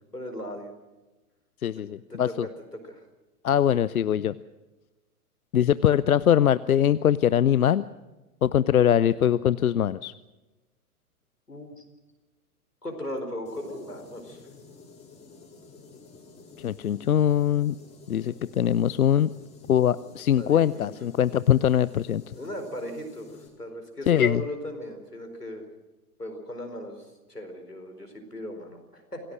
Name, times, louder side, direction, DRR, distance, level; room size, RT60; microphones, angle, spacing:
voice 1, 0.1-0.7 1.8-1.9 2.1-3.0 11.5-11.8 12.8-14.5 20.4-20.8 22.4-25.7 26.2-29.2, left 1 dB, 90° left, 5 dB, 4.6 m, -37 dB
voice 2, 1.6-2.5 3.4-4.4 5.5-7.8 8.4-10.1 16.6-17.8 18.1-19.3 19.7-22.3 24.1-24.4, left 10 dB, 70° left, 17 dB, 0.7 m, -22 dB
sound 1, 13.4-23.5, left 4 dB, 15° left, 4.6 m, -50 dB
26.5 x 17.5 x 6.3 m, 1.1 s
figure-of-eight pair, 105°, 45 cm